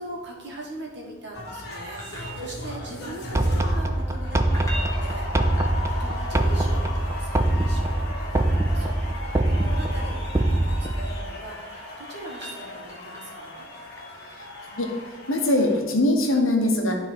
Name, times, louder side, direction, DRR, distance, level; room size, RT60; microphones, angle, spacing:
voice 1, 0.0-13.6, right 1 dB, 55° right, -2 dB, 1.6 m, -41 dB
sound 1, 1.3-15.8, left 1 dB, 50° left, 1.5 m, -37 dB
sound 2, 1.7-2.9 4.4-6.2 8.4-10.0 11.4-13.5 16.3-16.4, right 1 dB, 15° left, 1.4 m, -42 dB
sound 3, 3.4-11.2, right 1 dB, 15° right, 0.3 m, -24 dB
voice 2, 15.3-16.9, left 1 dB, 70° left, 2 dB, 1.2 m, -22 dB
11.0 x 3.7 x 4.5 m, 1.4 s
head